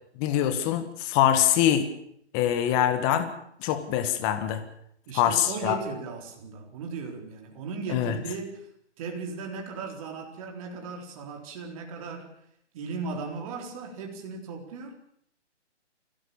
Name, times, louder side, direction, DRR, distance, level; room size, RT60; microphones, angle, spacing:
voice 1, 0.2-1.9 2.3-3.3 3.6-4.6 5.1-5.8 7.9-8.1, left 10 dB, 20° left, 9 dB, 1.6 m, -24 dB
voice 2, 5.1-8.7 9.0-12.4 12.7-15.0, right 4 dB, 30° right, 3 dB, 4.1 m, -37 dB
25.0 x 17.0 x 7.1 m, 0.68 s
hypercardioid pair, 155°, 35 cm